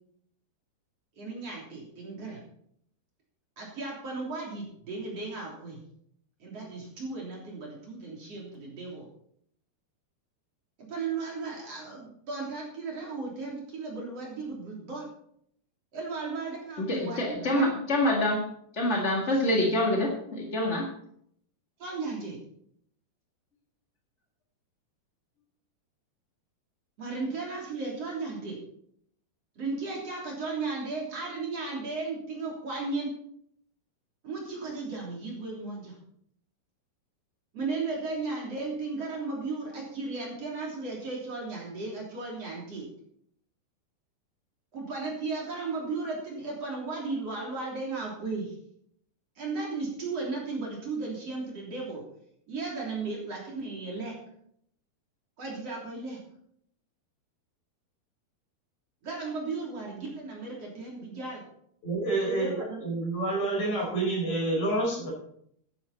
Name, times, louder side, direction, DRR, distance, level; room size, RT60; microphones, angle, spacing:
voice 1, 1.2-2.4 3.6-5.8 6.4-9.1 10.8-15.1 15.9-17.7 21.8-22.4 27.0-28.6 29.6-33.1 34.2-36.0 37.5-42.9 44.7-48.6 49.4-52.0 52.5-54.2 55.4-56.2 59.0-61.4 62.2-62.8, right 3 dB, 40° right, 4.0 m, -35 dB
voice 2, 16.9-18.5 18.7-20.9, left 1 dB, 65° left, 0.7 m, -26 dB
voice 3, 61.8-65.1, right 2 dB, 45° left, 6.1 m, -28 dB
14.0 x 10.5 x 4.3 m
omnidirectional pair, 4.6 m